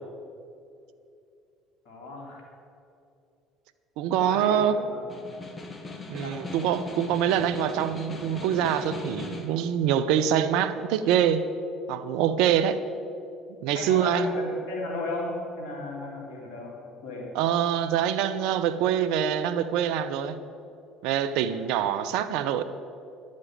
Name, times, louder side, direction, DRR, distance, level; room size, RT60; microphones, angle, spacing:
voice 1, 1.9-2.4 4.2-5.0 5.3-5.4 6.2-6.4 13.7-17.3 21.5-21.6, left 2 dB, 65° left, -2 dB, 3.8 m, -35 dB
voice 2, 4.0-4.8 6.1-11.4 11.9-12.8 13.6-14.3 17.3-20.4 21.0-22.6, right 9 dB, 70° right, 12 dB, 0.7 m, -25 dB
Snare drum, 4.9-9.6, left 3 dB, 25° left, 1.9 m, -39 dB
11.0 x 7.5 x 9.0 m, 2.6 s
hypercardioid pair, 65°, 0 cm